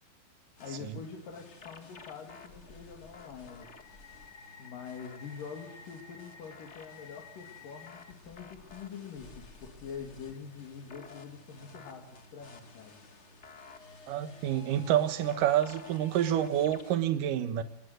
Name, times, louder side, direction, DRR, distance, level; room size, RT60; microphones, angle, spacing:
sound 1, 0.6-17.0, left 4 dB, 80° left, 0.6 m, -52 dB
voice 1, 0.6-3.7 4.6-13.0, left 6 dB, 60° left, 3.9 m, -45 dB
voice 2, 14.1-17.6, right 11 dB, 65° right, 2.7 m, -28 dB
24.5 x 20.0 x 8.0 m
omnidirectional pair, 4.4 m